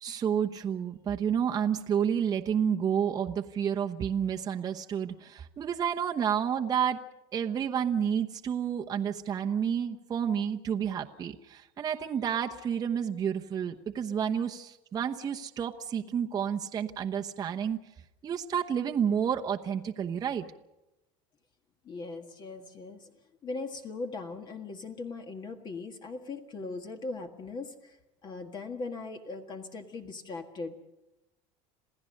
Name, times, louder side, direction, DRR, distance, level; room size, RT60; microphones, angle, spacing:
voice 1, 0.0-7.0 7.3-17.8 18.2-20.5, right 8 dB, 25° right, 3 dB, 1.0 m, -30 dB
voice 2, 21.8-23.1 23.4-28.0 28.2-30.8, left 3 dB, 30° left, 6 dB, 1.7 m, -39 dB
27.5 x 16.0 x 6.6 m, 0.98 s
cardioid pair, 140°, 14 cm